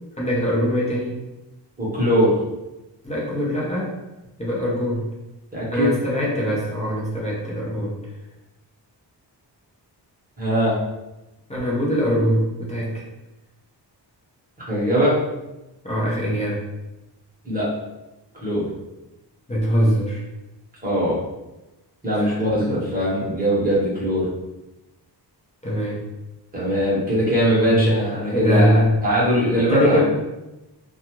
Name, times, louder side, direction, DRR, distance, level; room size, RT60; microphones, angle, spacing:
voice 1, 0.2-1.2 3.0-4.0 4.4-5.1 5.7-8.0 11.5-13.0 15.8-16.7 19.5-20.2 22.1-22.4 22.7-22.8 25.6-26.0 27.6-28.0 28.3-28.9 29.6-30.0, equal, 15° left, -6 dB, 0.6 m, -22 dB
voice 2, 1.8-2.3 5.5-5.9 10.4-10.8 14.6-15.2 17.4-17.7 18.4-18.7 20.8-21.2 22.0-24.3 26.5-30.0, equal, 20° right, -7 dB, 0.9 m, -21 dB
2.4 x 2.3 x 2.9 m, 0.98 s
wide cardioid pair, 155°, 43 cm